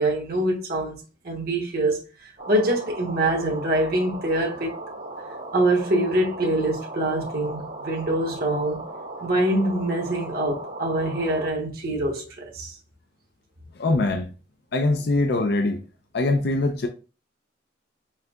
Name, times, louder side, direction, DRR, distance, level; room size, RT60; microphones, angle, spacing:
voice 1, 0.0-4.7 5.5-8.8 9.2-12.7, right 1 dB, 55° right, 1.1 m, -24 dB
sound 1, 2.4-11.5, right 2 dB, 75° right, 1.8 m, -37 dB
voice 2, 13.8-14.3 14.7-15.8 16.1-16.9, left 2 dB, 60° left, 0.5 m, -22 dB
5.7 x 2.8 x 2.3 m
head